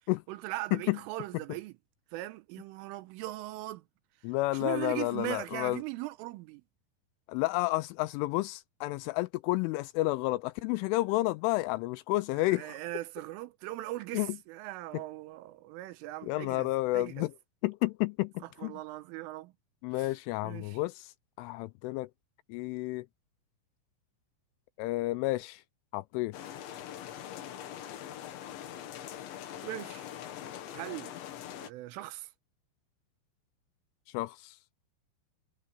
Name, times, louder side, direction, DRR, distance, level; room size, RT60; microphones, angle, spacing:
voice 1, 0.3-1.7 2.1-3.8 4.5-6.6 12.4-16.7 16.9-17.3 18.6-19.5 20.0-20.1 20.4-20.8 29.6-30.1 30.7-31.1 31.6-32.3, right 18 dB, 85° right, 3.3 m, -39 dB
voice 2, 4.2-5.8 7.3-12.8 14.1-14.4 14.9-15.0 16.2-17.3 17.6-18.7 19.8-21.1 21.4-22.1 22.5-23.1 24.8-25.6 25.9-26.4 34.1-34.6, left 20 dB, 85° left, 2.9 m, -31 dB
sound 1, 26.3-31.7, left 10 dB, 70° left, 4.0 m, -43 dB
omnidirectional pair, 5.9 m